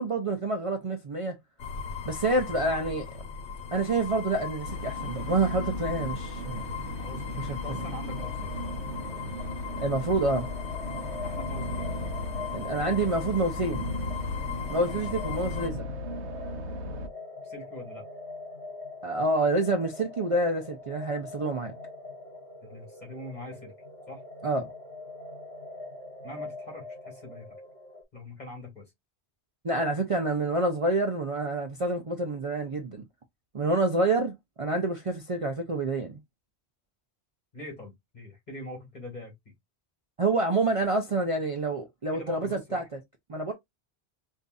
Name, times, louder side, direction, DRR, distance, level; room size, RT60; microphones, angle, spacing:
voice 1, 0.0-1.4 2.1-3.1 3.7-6.7 7.4-7.8 9.8-10.5 12.5-13.9 14.7-15.9 19.0-21.7 24.4-24.7 29.6-33.0 33.5-36.2 40.2-42.8 43.3-43.5, right 2 dB, 35° right, 0.6 m, -28 dB
sound 1, 1.6-15.7, left 6 dB, 85° left, 1.0 m, -38 dB
sound 2, 4.6-17.1, left 1 dB, 90° right, 1.0 m, -36 dB
voice 2, 7.0-8.5 11.2-12.0 14.8-15.0 17.4-18.1 22.6-23.7 24.1-24.2 26.2-27.6 28.1-28.9 37.5-39.5 42.1-42.9, left 1 dB, 40° left, 2.1 m, -43 dB
sound 3, 8.1-28.0, left 2 dB, 10° left, 1.8 m, -44 dB
5.2 x 2.7 x 2.3 m
omnidirectional pair, 1.1 m